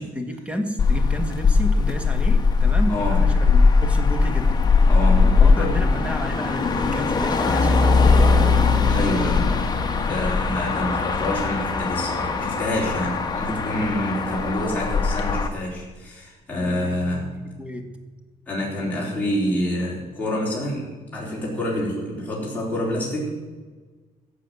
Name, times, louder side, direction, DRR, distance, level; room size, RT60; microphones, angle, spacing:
voice 1, 0.0-4.6 5.1-8.7 14.0-14.2 16.5-18.0, equal, 10° right, 6 dB, 1.7 m, -32 dB
Motor vehicle (road), 0.8-15.5, left 4 dB, 25° left, 1.4 m, -20 dB
voice 2, 2.9-3.3 4.9-5.7 8.9-9.6 10.0-17.4 18.5-23.4, left 1 dB, 10° left, -6 dB, 4.2 m, -27 dB
15.0 x 7.6 x 7.7 m, 1.3 s
cardioid pair, 135°, 16 cm